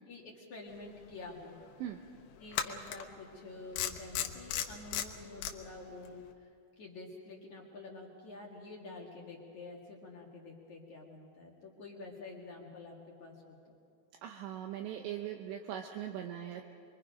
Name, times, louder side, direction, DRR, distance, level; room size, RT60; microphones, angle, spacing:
voice 1, 0.1-1.6 2.4-6.5 6.8-13.8, left 3 dB, 50° left, -2 dB, 2.6 m, -48 dB
sound 1, 1.1-1.2 2.5-3.0 3.8-5.5, left 10 dB, 80° left, 3.4 m, -34 dB
voice 2, 14.2-16.6, right 10 dB, 75° right, 2 dB, 3.0 m, -40 dB
28.5 x 23.0 x 5.2 m, 2.6 s
omnidirectional pair, 5.6 m